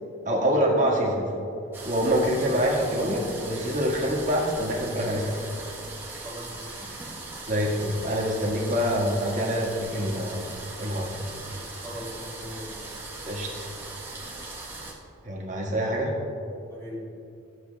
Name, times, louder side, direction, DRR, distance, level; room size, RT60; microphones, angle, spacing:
voice 1, 0.3-1.3 1.8-5.4 7.5-10.5 10.8-11.1 13.3-13.7 15.2-16.1, equal, 35° right, -3 dB, 1.8 m, -25 dB
sound 1, 1.7-14.9, right 2 dB, 10° right, 1.3 m, -39 dB
voice 2, 6.2-6.9 7.5-7.6 11.8-12.9 16.7-17.0, equal, 10° left, -8 dB, 1.8 m, -40 dB
13.0 x 7.3 x 3.5 m, 2.7 s
head